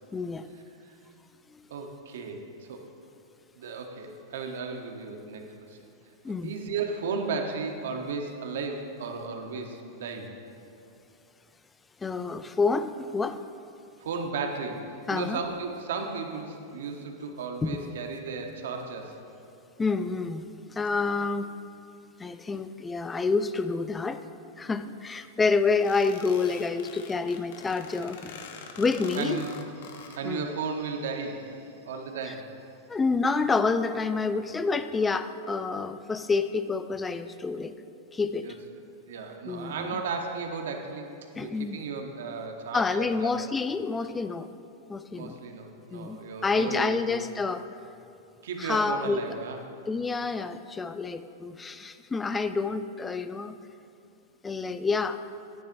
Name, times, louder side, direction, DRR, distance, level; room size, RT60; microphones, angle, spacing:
voice 1, 0.1-0.5 1.5-1.6 6.2-6.5 12.0-13.4 15.1-15.4 17.6-17.8 19.8-21.5 22.2-24.2 24.6-28.5 28.8-29.4 30.2-30.4 32.3-32.4 32.9-37.7 38.1-38.5 39.5-40.0 41.4-41.8 42.7-44.5 44.9-45.4 45.9-47.6 48.6-49.2 49.9-53.6 54.4-55.2, left 4 dB, 15° left, 11 dB, 0.3 m, -28 dB
voice 2, 1.7-2.8 3.6-5.8 6.4-10.3 14.0-19.1 29.1-29.5 29.9-32.4 38.4-38.5 39.1-41.1 41.4-43.3 45.1-47.2 48.4-49.6, right 4 dB, 80° right, 3 dB, 1.0 m, -35 dB
sound 1, 25.8-30.2, left 6 dB, 65° left, 0.8 m, -45 dB
10.5 x 9.6 x 2.6 m, 2.6 s
hypercardioid pair, 130°, 0 cm